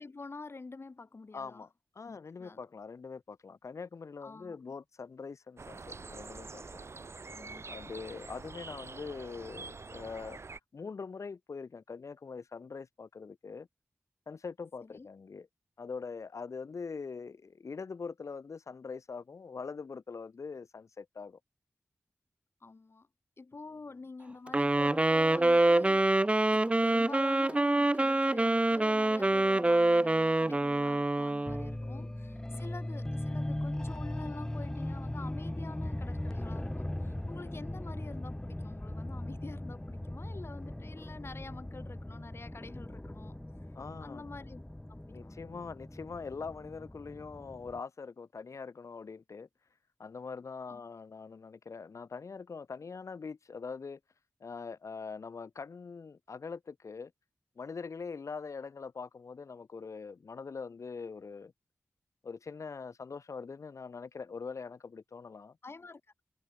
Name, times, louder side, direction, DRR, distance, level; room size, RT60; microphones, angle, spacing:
voice 1, 0.0-1.7 2.1-2.6 4.2-4.6 7.3-7.7 14.8-15.1 22.6-23.1 23.4-43.4 44.0-44.6 44.9-45.4 50.7-50.8 65.6-66.2, left 3 dB, 50° left, 7.2 m, -47 dB
voice 2, 1.3-1.7 1.9-6.8 7.6-10.4 10.7-13.7 14.3-15.5 15.8-21.4 31.8-32.1 32.5-32.7 37.3-37.6 43.7-44.2 45.1-49.5 50.0-54.0 54.4-57.1 57.6-61.5 62.2-65.6, left 5 dB, 80° left, 4.9 m, -43 dB
sound 1, 5.6-10.6, right 4 dB, 60° right, 7.7 m, -46 dB
Wind instrument woodwind instrument, 24.5-31.7, right 2 dB, 25° right, 0.9 m, -26 dB
sound 2, 31.5-47.8, left 1 dB, 15° left, 1.0 m, -39 dB
wide cardioid pair, 80°, 5 cm